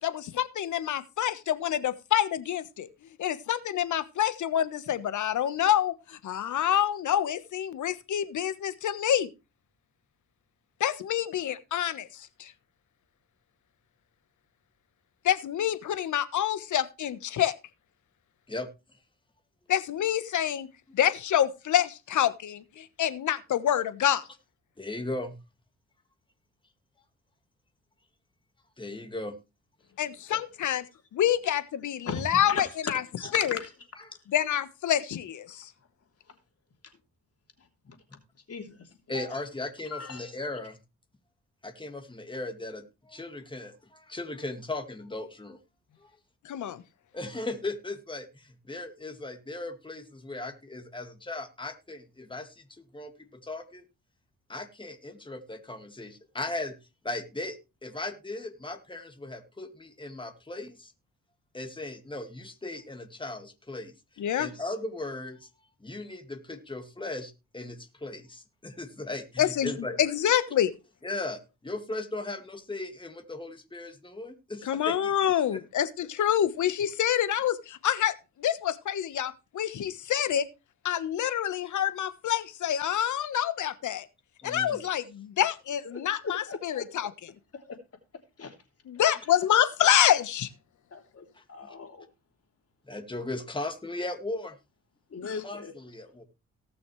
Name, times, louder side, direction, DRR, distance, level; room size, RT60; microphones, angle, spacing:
voice 1, 0.0-2.9 3.2-9.3 10.8-12.5 15.2-17.5 19.7-20.7 20.9-24.2 30.0-30.9 31.1-33.0 33.3-33.6 34.3-35.7 46.4-46.8 64.2-64.5 69.4-69.7 70.0-70.7 74.6-80.4 80.8-84.1 84.4-87.1 88.9-90.5 95.2-95.4, left 10 dB, 70° left, 1.2 m, -27 dB
voice 2, 24.8-25.4 28.8-29.4 30.3-30.4 33.2-33.3 34.0-34.1 39.1-40.8 41.6-45.6 46.0-46.1 46.6-46.7 47.1-53.8 54.5-56.8 57.0-60.9 61.5-63.9 64.4-65.5 65.8-70.0 71.0-75.6 84.4-84.8 91.4-91.7 92.9-94.6 95.4-96.2, left 2 dB, 15° left, 2.2 m, -37 dB
voice 3, 32.0-33.7 37.8-38.0 38.5-38.9 39.1-39.3 39.9-40.3 86.2-86.8 87.5-87.8 88.4-88.5 90.9-92.1 95.1-95.7, left 4 dB, 50° left, 3.1 m, -38 dB
18.5 x 6.2 x 3.2 m
cardioid pair, 70°, 31 cm